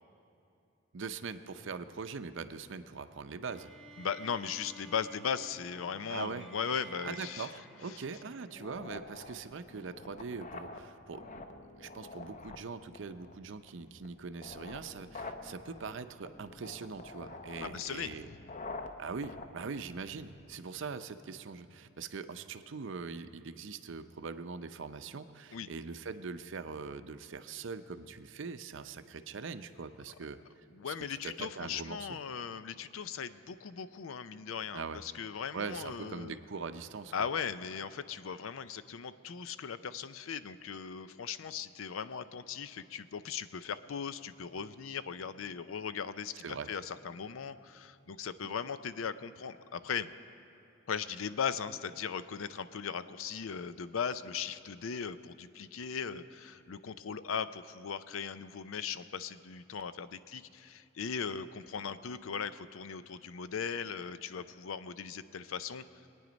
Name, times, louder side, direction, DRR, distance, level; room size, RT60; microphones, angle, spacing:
voice 1, 0.9-3.7 6.1-6.5 7.0-11.3 11.8-18.3 19.0-30.4 30.8-32.2 34.7-35.0 35.5-37.1 46.4-46.7, right 5 dB, 65° right, 10 dB, 0.6 m, -42 dB
sound 1, 3.4-8.7, right 3 dB, ahead, 1.1 m, -53 dB
voice 2, 4.0-7.5 17.6-18.3 25.5-25.7 30.7-36.4 37.1-50.1 50.9-65.8, left 6 dB, 85° left, 13 dB, 0.5 m, -38 dB
sound 2, 8.5-20.5, left 3 dB, 35° left, 0.7 m, -47 dB
22.5 x 9.4 x 5.2 m, 2.7 s
head